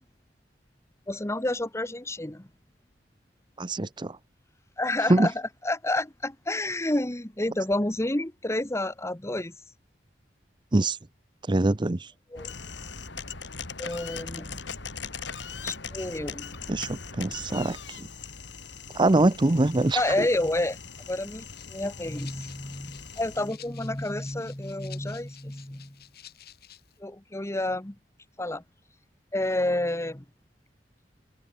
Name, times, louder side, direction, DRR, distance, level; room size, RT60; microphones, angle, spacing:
voice 1, 1.1-2.5 4.8-9.5 12.3-12.5 13.8-14.6 15.6-16.6 19.9-20.8 21.1-26.0 27.0-27.9 28.4-28.6 29.3-30.2, left 1 dB, 15° left, 1.3 m, -29 dB
voice 2, 3.6-4.2 5.1-5.3 10.7-11.0 11.5-12.1 16.7-18.1 18.9-20.0, right 2 dB, 25° right, 0.7 m, -23 dB
sound 1, 12.4-23.5, left 5 dB, 85° left, 3.7 m, -40 dB
Rattle (instrument), 21.5-27.0, left 11 dB, 60° left, 3.8 m, -52 dB
head